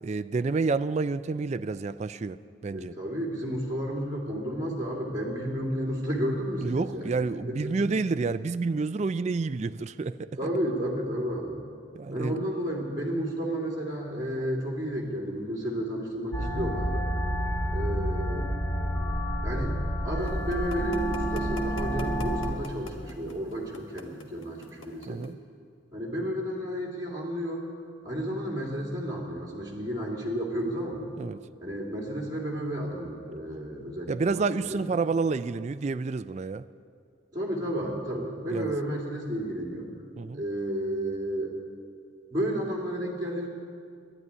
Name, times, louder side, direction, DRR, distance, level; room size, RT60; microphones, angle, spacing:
voice 1, 0.0-3.0 6.6-10.3 11.9-12.4 16.4-16.7 25.1-25.4 31.2-31.4 34.1-36.6 38.5-38.7 40.2-40.4, right 4 dB, 35° right, 12 dB, 0.3 m, -29 dB
voice 2, 2.7-7.7 10.3-11.6 12.1-17.1 17.7-18.5 19.4-19.8 20.0-25.2 25.9-27.6 28.0-31.0 31.6-34.9 37.3-39.9 40.3-41.5 42.3-43.5, equal, 20° right, -4 dB, 2.6 m, -32 dB
sound 1, 16.3-22.5, equal, 15° left, 1.9 m, -29 dB
sound 2, 20.3-25.3, left 2 dB, 80° left, 1.5 m, -44 dB
12.0 x 11.0 x 10.0 m, 2.3 s
head